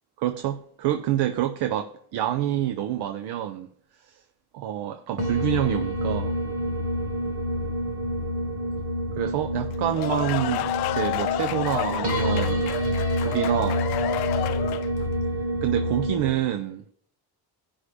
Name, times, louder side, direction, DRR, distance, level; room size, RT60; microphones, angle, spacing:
voice 1, 0.2-3.7 4.1-4.2 4.5-6.4 9.2-13.8 15.6-16.8, right 12 dB, 85° right, 0.7 m, -27 dB
sound 1, 5.2-16.3, equal, 35° right, 1.3 m, -28 dB
sound 2, 9.7-15.0, left 14 dB, 70° left, 0.5 m, -30 dB
16.0 x 5.6 x 3.3 m
cardioid pair, 160°, 39 cm